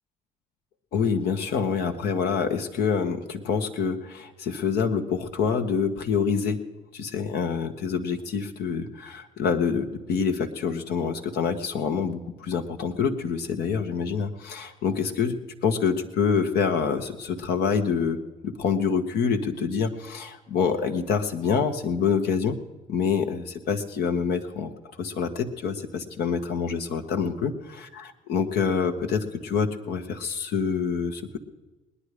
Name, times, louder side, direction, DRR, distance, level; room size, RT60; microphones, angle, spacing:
voice 1, 0.9-6.6 6.9-18.2 18.4-22.6 22.9-24.7 25.0-31.4, left 6 dB, 65° left, 6 dB, 1.3 m, -26 dB
20.5 x 10.0 x 5.0 m, 1.1 s
hypercardioid pair, 50°, 18 cm